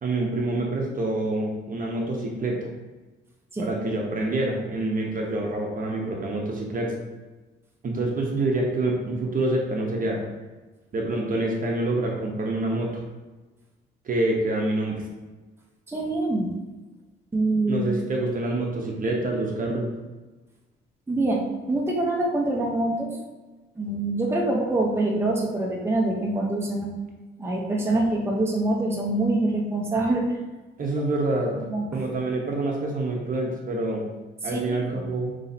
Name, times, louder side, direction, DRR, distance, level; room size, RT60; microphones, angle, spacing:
voice 1, 0.0-2.7 3.6-7.0 7.8-10.2 10.9-13.0 14.0-15.0 17.7-19.9 30.8-31.6 31.9-34.1 34.4-35.3, right 2 dB, 45° right, -1 dB, 0.9 m, -26 dB
voice 2, 15.9-16.5 17.3-17.9 21.1-23.2 23.8-26.9 27.4-30.4 31.5-31.9 34.4-35.0, right 2 dB, 10° right, -2 dB, 0.9 m, -25 dB
5.6 x 3.1 x 2.8 m, 1.2 s
cardioid pair, 90°, 20 cm